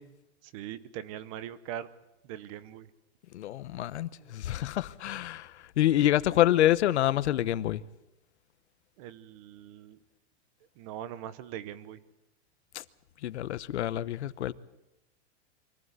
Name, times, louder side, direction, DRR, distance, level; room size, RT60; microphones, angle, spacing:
voice 1, 0.4-1.9 2.2-2.9 4.2-4.3 9.0-10.0 10.8-12.0, right 10 dB, 30° right, 0.9 m, -41 dB
voice 2, 3.3-7.8 12.7-12.8 13.2-14.5, left 13 dB, 80° left, 1.1 m, -27 dB
24.5 x 15.0 x 9.6 m
supercardioid pair, 170°, 34 cm